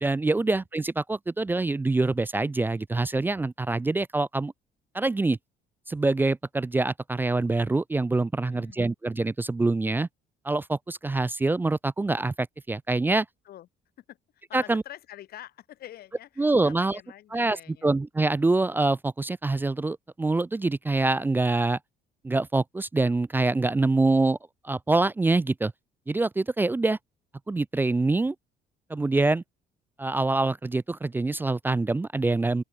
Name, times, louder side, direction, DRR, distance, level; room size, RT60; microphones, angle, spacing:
voice 1, 0.0-4.5 4.9-5.4 5.9-10.1 10.4-13.3 14.5-14.8 16.4-17.0 17.3-17.6 17.8-21.8 22.2-24.4 24.6-25.7 26.1-27.0 27.5-28.4 28.9-29.4 30.0-32.6, right 2 dB, 10° right, 0.3 m, -25 dB
voice 2, 8.4-8.9 13.4-13.7 14.1-14.2 14.5-17.9, left 12 dB, 65° left, 4.7 m, -46 dB
open air
cardioid pair, 110°, 17 cm